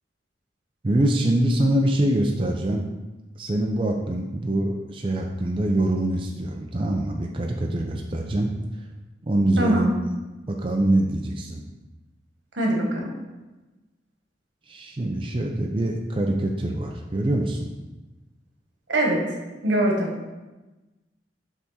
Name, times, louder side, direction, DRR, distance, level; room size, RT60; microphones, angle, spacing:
voice 1, 0.8-2.9 3.4-8.5 9.2-9.9 10.5-11.6 14.7-17.7, right 1 dB, 30° right, 0 dB, 0.4 m, -24 dB
voice 2, 9.6-9.9 12.5-13.1 18.9-19.2 19.6-20.3, right 1 dB, 80° right, -1 dB, 1.4 m, -22 dB
7.2 x 3.6 x 4.1 m, 1.1 s
head